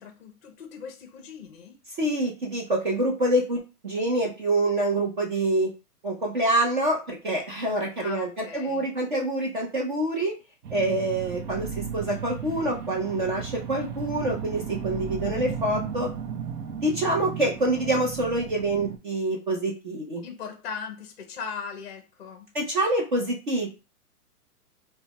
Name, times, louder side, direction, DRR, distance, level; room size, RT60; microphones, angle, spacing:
voice 1, 0.0-1.8 8.0-8.9 20.2-22.5, left 6 dB, 45° left, 0.5 m, -39 dB
voice 2, 2.0-3.6 3.8-5.7 6.0-10.3 10.7-16.1 16.8-20.2 22.5-23.7, right 1 dB, 35° right, 0.6 m, -26 dB
sound 1, 10.6-19.0, right 7 dB, 80° right, 0.7 m, -35 dB
3.2 x 2.2 x 2.8 m
hypercardioid pair, 165°, 47 cm